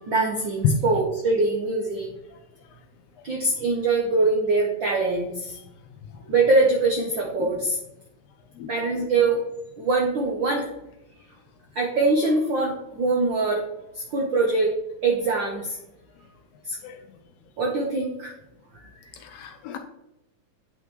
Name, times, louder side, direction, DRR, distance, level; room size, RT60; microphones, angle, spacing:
voice 1, 0.0-2.1 3.2-5.6 6.3-7.8 8.7-9.4 9.8-10.7 11.7-13.7 14.1-14.7 15.0-15.8 16.7-16.8 17.6-18.3, right 3 dB, 75° right, 0 dB, 1.1 m, -23 dB
voice 2, 19.2-19.8, left 5 dB, 75° left, 5 dB, 1.6 m, -27 dB
9.0 x 5.7 x 3.1 m, 0.89 s
omnidirectional pair, 3.4 m